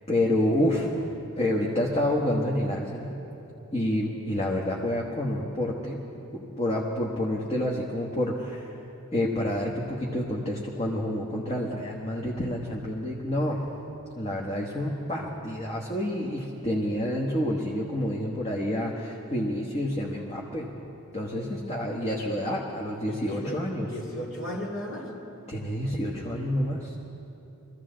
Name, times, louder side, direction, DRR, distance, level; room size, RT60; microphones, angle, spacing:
voice 1, 0.1-0.9 1.4-3.2 3.7-6.0 6.3-8.8 9.1-13.6 14.2-20.7 21.1-23.9 25.5-27.0, left 1 dB, 30° left, -3 dB, 1.1 m, -28 dB
voice 2, 23.1-25.1, equal, 60° left, -1 dB, 2.2 m, -35 dB
23.0 x 14.5 x 3.8 m, 2.8 s
head